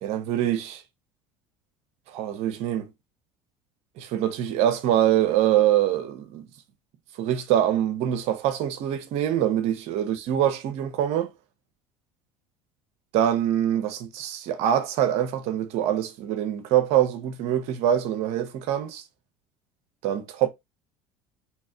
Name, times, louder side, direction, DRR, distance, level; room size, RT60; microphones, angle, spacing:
voice 1, 0.0-0.8 2.1-2.9 4.0-6.4 7.2-11.3 13.1-19.0 20.0-20.5, right 11 dB, 65° right, 0.8 m, -24 dB
3.1 x 2.9 x 3.7 m
hypercardioid pair, 80°, 12 cm